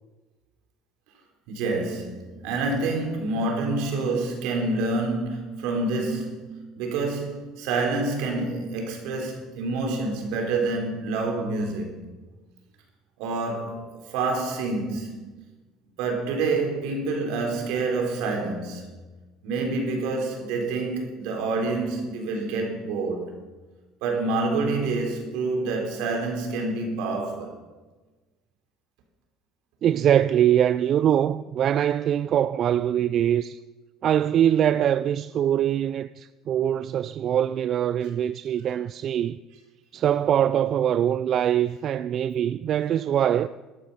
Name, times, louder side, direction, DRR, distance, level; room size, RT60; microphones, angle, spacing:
voice 1, 1.5-12.0 13.2-15.3 16.0-18.9 19.4-23.3 24.0-27.6, right 3 dB, 80° right, 3.6 m, -27 dB
voice 2, 29.8-33.6 34.0-39.4 39.9-43.5, right 10 dB, 50° right, 0.3 m, -23 dB
13.5 x 12.0 x 5.6 m
supercardioid pair, 105°, 0 cm